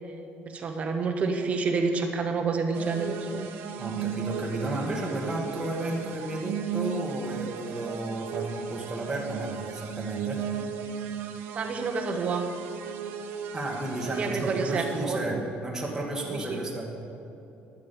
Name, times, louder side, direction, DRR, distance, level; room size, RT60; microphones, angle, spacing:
voice 1, 0.5-3.5 11.5-12.4 14.2-15.4 16.3-16.6, right 4 dB, 35° right, 4 dB, 1.1 m, -29 dB
sound 1, 2.7-15.1, right 7 dB, 70° right, 0.7 m, -36 dB
voice 2, 3.8-10.6 13.5-16.9, right 2 dB, 15° right, -2 dB, 1.5 m, -33 dB
11.5 x 9.5 x 5.2 m, 2.7 s
cardioid pair, 155°, 4 cm